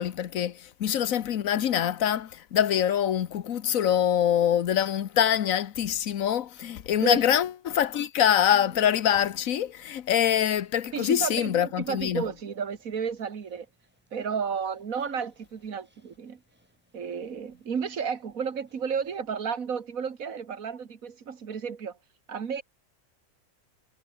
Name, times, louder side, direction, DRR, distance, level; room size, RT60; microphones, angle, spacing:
voice 1, 0.0-12.2, left 10 dB, 80° left, 1.3 m, -25 dB
Dog, 8.3-19.2, equal, 5° right, 6.3 m, -59 dB
voice 2, 10.9-13.7 14.1-16.4 16.9-22.0 22.3-22.6, right 6 dB, 85° right, 2.0 m, -32 dB
omnidirectional pair, 1.4 m